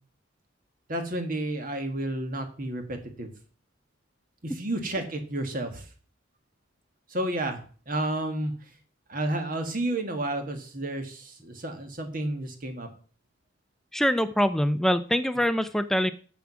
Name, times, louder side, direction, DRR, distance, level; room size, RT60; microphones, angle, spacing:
voice 1, 0.9-3.3 4.4-5.8 7.1-7.6 7.9-8.5 9.1-12.9, right 1 dB, 45° right, 6 dB, 1.6 m, -31 dB
voice 2, 13.9-16.1, equal, ahead, 11 dB, 0.4 m, -24 dB
7.5 x 7.0 x 6.1 m, 0.41 s
head